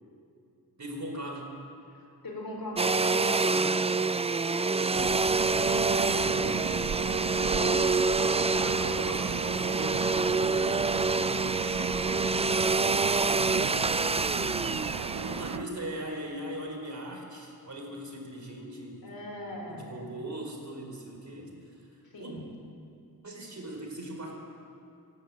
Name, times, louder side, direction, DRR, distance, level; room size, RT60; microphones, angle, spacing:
voice 1, 0.8-1.4 3.4-3.8 4.7-6.7 7.3-11.4 13.2-14.0 15.1-19.1 19.7-22.4 23.2-24.4, right 1 dB, 50° right, 1 dB, 4.3 m, -40 dB
voice 2, 1.9-3.8 5.7-6.4 14.8-15.0 19.0-19.9 22.0-22.5, left 1 dB, 70° left, 0 dB, 4.9 m, -40 dB
Domestic sounds home sounds, 2.8-15.6, right 3 dB, 15° right, 0.4 m, -27 dB
sound 1, 4.9-15.6, right 7 dB, 80° right, 0.9 m, -36 dB
26.5 x 11.5 x 8.6 m, 2.6 s
wide cardioid pair, 80°, 37 cm